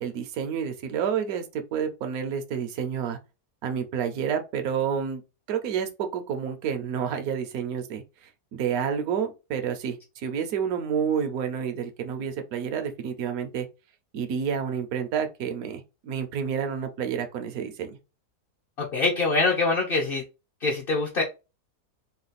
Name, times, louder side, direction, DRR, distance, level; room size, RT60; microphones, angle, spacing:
voice 1, 0.0-3.2 3.6-5.2 5.5-8.0 8.5-13.7 14.1-18.0, right 7 dB, 65° right, 1.2 m, -29 dB
voice 2, 18.8-20.2 20.6-21.2, left 3 dB, 45° left, 0.8 m, -24 dB
4.0 x 2.3 x 4.0 m
omnidirectional pair, 1.8 m